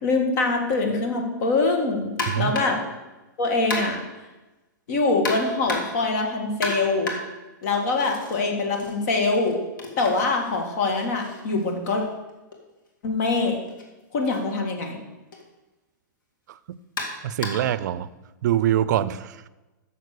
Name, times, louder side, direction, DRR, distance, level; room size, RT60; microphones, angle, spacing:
voice 1, 0.0-2.8 3.4-4.0 4.9-7.2 7.6-9.6 10.0-12.0 13.0-13.6 14.1-15.0, left 3 dB, 55° left, 3 dB, 1.8 m, -24 dB
sound 1, 2.2-2.9 3.7-4.2 5.2-6.1 6.6-8.4 8.7-12.6 13.7-13.8 14.3-14.4 15.3-15.5 17.0-17.8, left 2 dB, 90° left, 2.2 m, -33 dB
voice 2, 17.2-18.1 18.4-19.5, right 11 dB, 65° right, 17 dB, 0.4 m, -24 dB
6.7 x 6.6 x 6.7 m, 1.1 s
hypercardioid pair, 145°, 10 cm